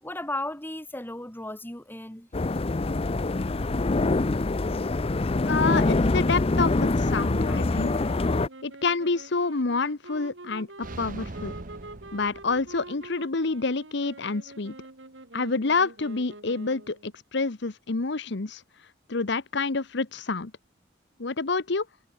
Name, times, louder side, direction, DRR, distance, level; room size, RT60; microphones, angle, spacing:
voice 1, 0.0-2.3, left 1 dB, 10° left, 2.7 m, -35 dB
sound 1, 2.3-8.5, left 2 dB, 30° left, 0.6 m, -25 dB
voice 2, 5.4-8.1 8.6-11.5 12.1-14.7 15.3-18.6 19.1-20.5 21.2-21.9, left 4 dB, 65° left, 1.0 m, -28 dB
sound 2, 6.7-17.1, right 2 dB, 75° right, 2.8 m, -46 dB
sound 3, 10.8-13.0, right 2 dB, 45° right, 1.2 m, -41 dB
head